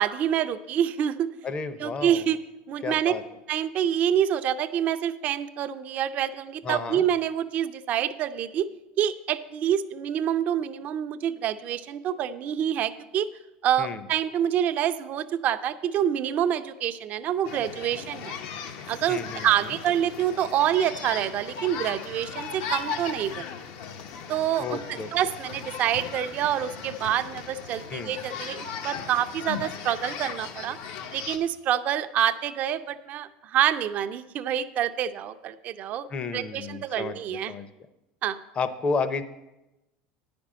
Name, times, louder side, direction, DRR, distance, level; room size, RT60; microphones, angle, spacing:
voice 1, 0.0-1.3 1.8-2.4 2.7-3.1 3.5-8.7 9.0-13.3 13.6-18.3 18.9-23.5 24.3-30.8 31.1-36.1 36.3-37.5 38.2-38.4, right 10 dB, 45° right, 10 dB, 0.5 m, -27 dB
voice 2, 1.4-2.2 2.8-3.2 6.6-7.0 13.8-14.0 19.1-19.8 24.6-25.1 27.9-28.1 36.1-37.2 37.5-37.7 38.6-39.2, left 4 dB, 30° left, 13 dB, 0.7 m, -31 dB
sound 1, 17.4-31.4, left 6 dB, 70° left, 0.9 m, -37 dB
9.6 x 5.2 x 7.4 m, 0.96 s
supercardioid pair, 120°, 4 cm